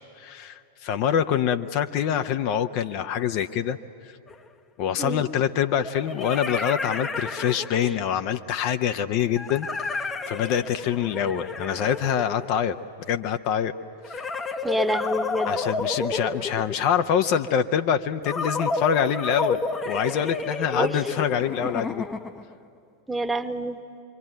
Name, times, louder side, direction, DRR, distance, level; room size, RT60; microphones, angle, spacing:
voice 1, 0.2-3.8 4.8-12.8 13.1-13.7 14.1-14.2 15.5-22.1, left 9 dB, 45° left, 8 dB, 0.8 m, -25 dB
sound 1, 4.3-4.4 5.7-8.1 9.4-12.8 14.0-17.1 18.3-22.5, left 3 dB, 15° left, 0.8 m, -31 dB
voice 2, 14.6-15.5 20.8-21.0 23.1-23.8, right 1 dB, 5° right, 8 dB, 1.1 m, -27 dB
26.5 x 24.5 x 9.1 m, 2.8 s
figure-of-eight pair, 90°, 0 cm